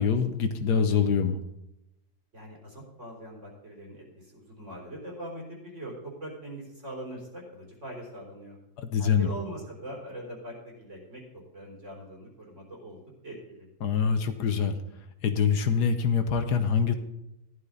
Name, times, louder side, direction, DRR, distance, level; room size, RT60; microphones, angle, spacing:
voice 1, 0.0-1.4 8.8-9.3 13.8-14.7 15.2-16.9, left 6 dB, 75° left, 8 dB, 1.5 m, -25 dB
voice 2, 2.3-8.6 9.0-13.7, right 1 dB, 45° right, -2 dB, 4.0 m, -42 dB
15.0 x 11.0 x 4.0 m, 0.88 s
omnidirectional pair, 1.8 m